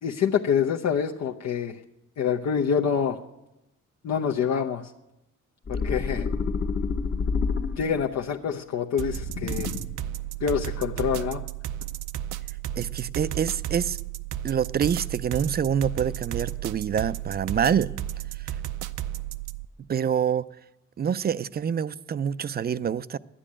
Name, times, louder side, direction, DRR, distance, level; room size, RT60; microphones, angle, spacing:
voice 1, 0.0-1.8 2.2-3.2 4.0-4.9 5.7-6.3 7.8-9.7 10.4-11.4, left 7 dB, 60° left, 1 dB, 0.8 m, -26 dB
sound 1, 5.7-8.1 9.1-10.0, left 5 dB, 40° left, 1.2 m, -29 dB
sound 2, 9.0-19.6, right 13 dB, 80° right, 0.6 m, -33 dB
voice 2, 12.8-14.0 14.4-17.9 19.9-20.4 21.0-23.2, right 8 dB, 35° right, 17 dB, 0.4 m, -26 dB
11.5 x 10.0 x 8.7 m, 0.92 s
cardioid pair, 90°, 30 cm